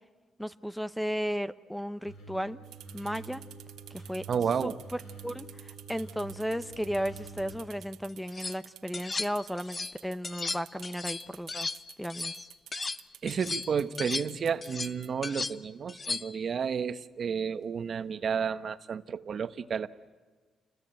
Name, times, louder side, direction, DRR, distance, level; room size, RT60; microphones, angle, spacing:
voice 1, 0.4-2.6 2.9-3.4 3.9-4.2 4.6-11.7 12.0-12.5, equal, ahead, 0.8 m, -35 dB
sound 1, 2.1-7.6, right 4 dB, 85° left, 6.6 m, -47 dB
sound 2, 2.6-15.1, right 12 dB, 85° right, 1.5 m, -51 dB
voice 2, 4.3-4.8 13.2-19.9, right 6 dB, 50° right, 1.1 m, -31 dB
sound 3, 8.1-8.6 8.9-10.0 10.2-13.0 13.3-16.4, left 3 dB, 30° left, 0.9 m, -36 dB
29.0 x 21.5 x 9.1 m
cardioid pair, 90°, 0 cm